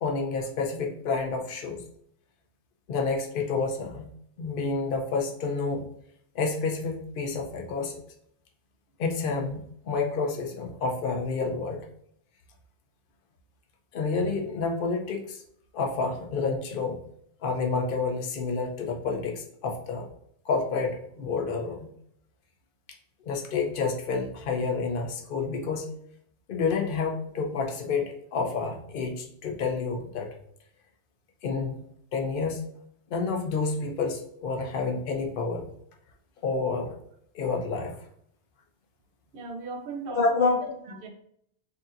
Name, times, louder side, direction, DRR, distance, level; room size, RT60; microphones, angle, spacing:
voice 1, 0.0-1.8 2.9-4.1 4.4-5.9 6.3-8.0 9.0-11.9 13.9-15.4 15.7-17.0 17.4-20.1 20.5-21.9 23.3-25.9 26.5-30.3 31.4-31.8 32.1-32.7 33.1-35.7 36.4-36.9 37.3-37.9 40.1-40.7, left 4 dB, 55° left, 1 dB, 0.8 m, -29 dB
voice 2, 39.3-41.1, right 3 dB, 60° right, 3 dB, 0.9 m, -36 dB
6.5 x 2.8 x 2.5 m, 0.70 s
omnidirectional pair, 1.1 m